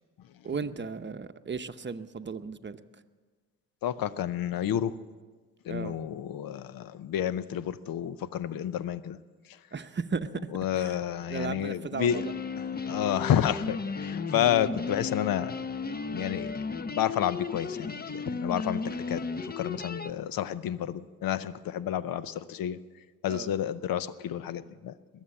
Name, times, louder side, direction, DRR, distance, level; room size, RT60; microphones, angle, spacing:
voice 1, 0.4-2.8 5.7-6.0 9.7-10.3 10.8-11.0 11.3-12.3 23.3-23.6, right 5 dB, 30° right, 10 dB, 0.9 m, -35 dB
voice 2, 3.8-4.9 5.6-9.2 10.5-12.2 12.6-15.5 16.1-16.5 16.9-22.8 23.2-24.9, left 10 dB, 75° left, 16 dB, 0.7 m, -30 dB
sound 1, 12.1-20.1, left 4 dB, 25° left, 0.8 m, -34 dB
21.5 x 7.5 x 8.7 m, 1.4 s
supercardioid pair, 50°, 35 cm